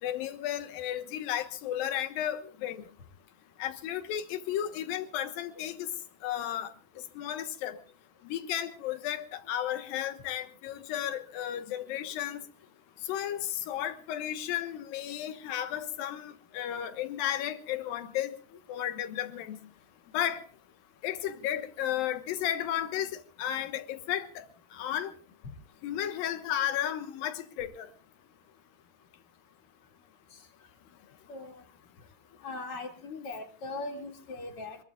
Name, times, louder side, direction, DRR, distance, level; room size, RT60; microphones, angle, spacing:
voice 1, 0.0-2.8 3.6-5.9 6.2-6.7 7.1-7.8 8.2-12.4 13.1-18.4 18.7-19.6 20.1-20.4 21.0-25.1 25.8-27.9, left 11 dB, 70° left, 2.9 m, -33 dB
voice 2, 31.3-31.6 32.4-34.8, left 2 dB, 40° left, 3.1 m, -39 dB
25.5 x 21.5 x 2.4 m
omnidirectional pair, 4.4 m